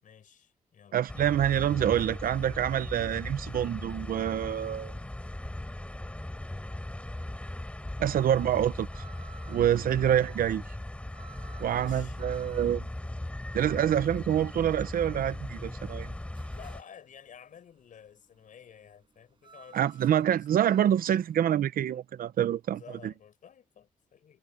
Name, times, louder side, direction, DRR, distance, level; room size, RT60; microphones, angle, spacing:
voice 1, 0.0-1.0 11.6-12.2 16.5-20.5 22.8-24.4, left 8 dB, 65° left, 6.0 m, -52 dB
voice 2, 0.9-4.9 8.0-9.0 9.5-10.6 11.6-12.9 13.5-16.1 19.7-23.1, right 10 dB, 80° right, 0.8 m, -26 dB
sound 1, 1.1-16.8, left 1 dB, 10° left, 5.1 m, -38 dB
sound 2, 2.8-21.4, right 5 dB, 35° right, 7.7 m, -57 dB
wide cardioid pair, 145°, 15 cm